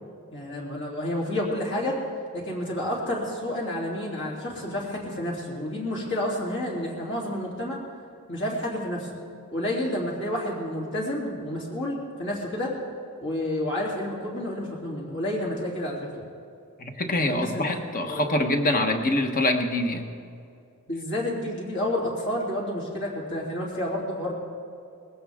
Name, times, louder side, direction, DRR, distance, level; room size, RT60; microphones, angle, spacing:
voice 1, 0.3-2.0 2.3-7.8 8.3-9.1 9.5-12.7 13.2-16.2 17.3-17.8 18.1-18.2 20.9-24.3, left 1 dB, 60° left, -4 dB, 3.2 m, -30 dB
voice 2, 16.8-20.1, left 1 dB, 40° left, 5 dB, 1.2 m, -25 dB
20.0 x 16.5 x 3.6 m, 2.5 s
head